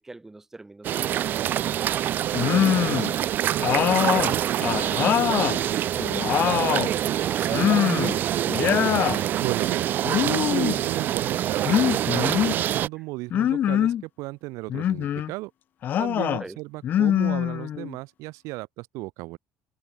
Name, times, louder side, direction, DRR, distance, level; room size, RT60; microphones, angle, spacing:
voice 1, 0.0-3.1 16.4-16.6, right 2 dB, 10° right, 2.1 m, -43 dB
sound 1, 0.8-12.9, right 11 dB, 40° right, 0.5 m, -25 dB
sound 2, 2.3-3.1 3.6-5.6 6.0-6.9 7.5-8.2 8.5-9.2 10.0-10.8 11.6-12.6 13.3-14.0 14.7-15.3 15.8-16.4 16.8-17.9, left 10 dB, 35° left, 0.8 m, -23 dB
voice 2, 9.4-15.5 16.0-19.4, right 22 dB, 75° right, 1.6 m, -34 dB
cardioid pair, 180°, 5 cm